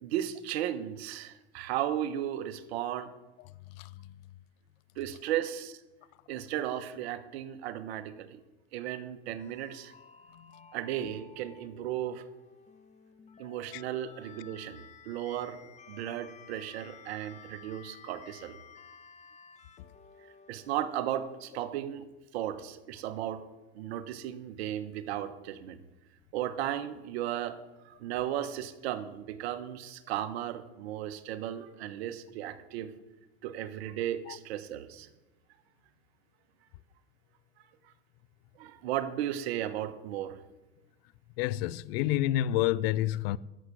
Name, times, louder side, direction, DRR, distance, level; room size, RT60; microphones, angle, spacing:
voice 1, 0.0-3.1 5.0-5.8 6.3-8.4 8.7-9.9 10.7-12.2 13.4-15.6 15.9-18.6 20.5-22.1 22.3-23.4 23.7-25.8 26.3-27.6 27.8-32.9 33.4-35.1 37.8-37.9 38.6-40.4, right 11 dB, 70° right, 1.3 m, -35 dB
voice 2, 3.7-4.2 10.3-10.7 13.7-13.8 34.3-34.4 41.4-43.4, left 13 dB, 65° left, 0.6 m, -29 dB
sound 1, 9.4-21.5, left 6 dB, 20° left, 1.1 m, -54 dB
11.5 x 7.5 x 8.3 m
hypercardioid pair, 100°, 32 cm